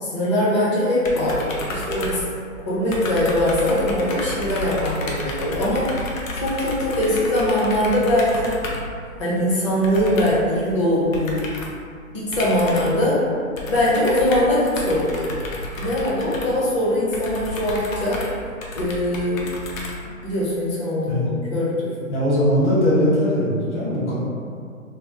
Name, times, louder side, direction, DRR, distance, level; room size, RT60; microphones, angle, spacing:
voice 1, 0.0-2.2 2.6-5.9 6.3-8.6 9.2-11.4 12.1-13.2 13.7-15.3 15.8-18.3 18.8-19.5 20.2-21.9, left 1 dB, 25° left, -7 dB, 0.5 m, -21 dB
sound 1, 1.0-2.6 2.9-8.9 9.8-10.5 11.1-11.8 12.3-13.1 13.6-20.4, left 1 dB, 70° left, 0.7 m, -31 dB
voice 2, 22.1-24.2, equal, 55° left, -7 dB, 1.3 m, -20 dB
3.4 x 2.0 x 2.7 m, 2.2 s
hypercardioid pair, 140°, 41 cm